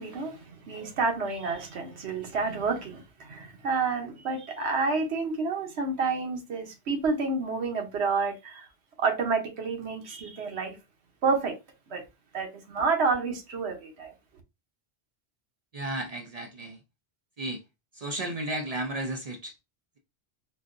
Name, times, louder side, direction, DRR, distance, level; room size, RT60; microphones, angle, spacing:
voice 1, 0.0-8.7 9.0-10.8 11.2-11.6 11.9-12.0 12.3-14.1, right 4 dB, 75° right, 1.1 m, -29 dB
voice 2, 15.7-16.8 17.4-17.6 17.9-19.5, right 1 dB, 50° right, 0.5 m, -33 dB
3.8 x 2.3 x 2.5 m
omnidirectional pair, 1.1 m